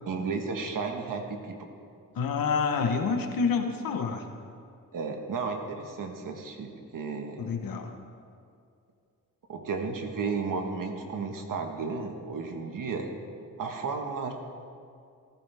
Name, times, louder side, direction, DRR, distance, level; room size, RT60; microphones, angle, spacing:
voice 1, 0.1-1.6 4.9-7.5 9.5-13.1 13.6-14.3, right 4 dB, 70° right, 4 dB, 1.5 m, -33 dB
voice 2, 2.1-4.3 7.4-8.0, left 5 dB, 85° left, 5 dB, 1.2 m, -28 dB
14.5 x 14.5 x 3.5 m, 2.4 s
cardioid pair, 100°, 34 cm